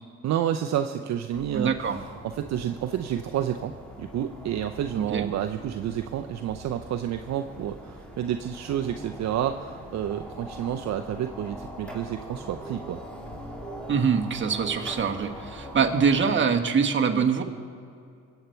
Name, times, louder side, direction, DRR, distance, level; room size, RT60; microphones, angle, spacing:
voice 1, 0.2-13.0, right 10 dB, 65° right, 7 dB, 0.6 m, -30 dB
sound 1, 1.3-16.2, equal, 5° left, 3.2 m, -42 dB
voice 2, 1.5-2.0 5.1-5.3 13.9-17.4, right 6 dB, 40° right, 3 dB, 1.3 m, -24 dB
22.0 x 8.2 x 4.5 m, 2.4 s
cardioid pair, 90°, 30 cm